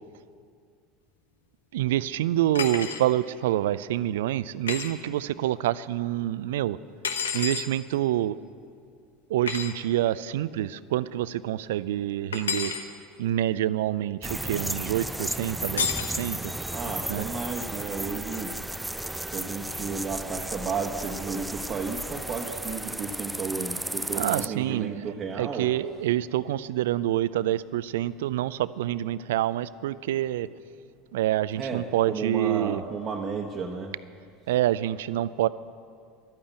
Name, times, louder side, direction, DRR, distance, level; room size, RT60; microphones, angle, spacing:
voice 1, 1.7-6.8 7.3-8.4 9.3-12.7 13.2-16.4 17.1-17.3 24.1-25.1 25.4-30.5 31.1-32.8 34.5-35.5, right 13 dB, 75° right, 18 dB, 0.4 m, -27 dB
sound 1, 2.5-3.0 4.7-4.9 7.0-7.7 9.5-9.7 12.3-12.8 15.8-16.1, left 6 dB, 85° left, 0.9 m, -29 dB
sound 2, 14.2-24.5, right 1 dB, 5° right, 0.4 m, -34 dB
voice 2, 16.5-18.9 19.2-25.7 31.6-33.9, right 5 dB, 35° right, 1 dB, 1.1 m, -33 dB
12.0 x 8.9 x 8.8 m, 2.3 s
hypercardioid pair, 80°, 0 cm